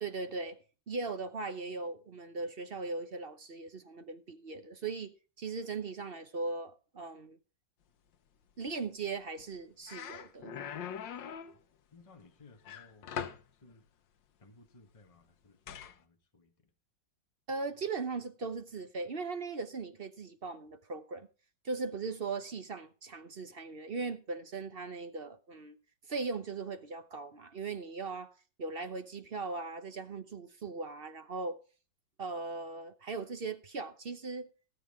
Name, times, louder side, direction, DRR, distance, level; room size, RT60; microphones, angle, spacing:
voice 1, 0.0-0.6 0.9-7.4 8.6-10.5 17.5-21.3 21.6-25.8 26.1-28.3 28.6-31.6 32.2-34.5, right 4 dB, 45° right, 0.8 m, -39 dB
sound 1, 9.4-9.6 9.9-11.6 12.7-13.5 15.7-15.9, left 8 dB, 90° left, 1.7 m, -41 dB
voice 2, 11.9-13.1 13.5-13.8 14.4-16.7, left 3 dB, 20° left, 1.3 m, -60 dB
18.0 x 7.7 x 3.6 m
omnidirectional pair, 1.9 m